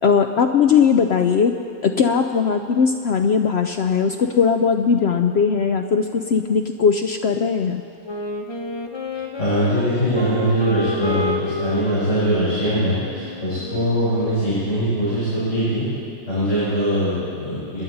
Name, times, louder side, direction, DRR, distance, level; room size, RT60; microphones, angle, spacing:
voice 1, 0.0-1.5 1.8-7.8, left 6 dB, 80° left, 5 dB, 0.5 m, -19 dB
Wind instrument woodwind instrument, 8.0-14.6, left 1 dB, 25° left, 0.6 m, -30 dB
voice 2, 9.4-15.9 16.3-17.8, equal, 45° left, -11 dB, 4.9 m, -22 dB
26.0 x 11.0 x 4.0 m, 2.5 s
omnidirectional pair, 1.7 m